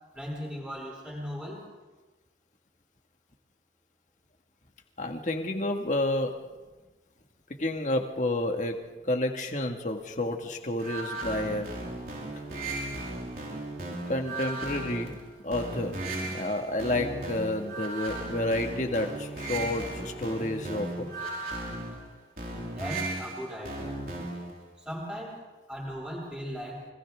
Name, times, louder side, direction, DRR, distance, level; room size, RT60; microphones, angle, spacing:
voice 1, 0.1-1.6 22.7-24.0 24.8-25.4 25.7-26.8, equal, 5° right, -4 dB, 7.8 m, -37 dB
voice 2, 5.0-6.3 7.6-8.8 9.1-11.7 14.1-15.2 15.4-15.9 16.2-21.1, left 1 dB, 45° left, 3 dB, 2.0 m, -30 dB
sound 1, 10.8-24.6, right 2 dB, 55° right, 5.1 m, -36 dB
30.0 x 25.0 x 3.8 m, 1.2 s
head